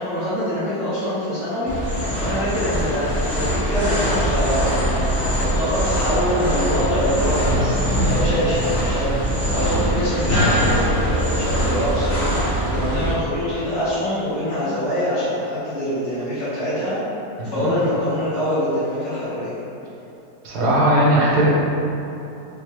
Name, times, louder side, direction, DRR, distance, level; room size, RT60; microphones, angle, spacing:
voice 1, 0.0-1.7 2.2-17.0 17.5-19.5, left 1 dB, 35° left, -15 dB, 1.5 m, -24 dB
sound 1, 1.7-13.1, equal, 10° left, 0.7 m, -22 dB
voice 2, 17.4-17.7 20.4-21.5, right 1 dB, 80° right, -6 dB, 1.4 m, -18 dB
5.1 x 2.1 x 3.1 m, 2.9 s
omnidirectional pair, 1.7 m